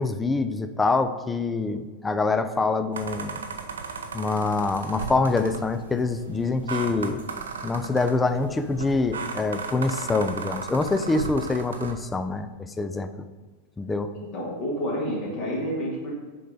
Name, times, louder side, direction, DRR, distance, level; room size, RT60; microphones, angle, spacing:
voice 1, 0.0-3.4 4.1-7.2 7.6-12.5 12.8-13.3 13.8-14.1, left 3 dB, 10° left, 9 dB, 0.4 m, -25 dB
sound 1, 2.9-11.9, right 5 dB, 65° right, 0.5 m, -36 dB
voice 2, 14.1-16.1, equal, 45° left, -4 dB, 1.7 m, -29 dB
6.4 x 4.3 x 3.9 m, 1.3 s
figure-of-eight pair, 90°, 0 cm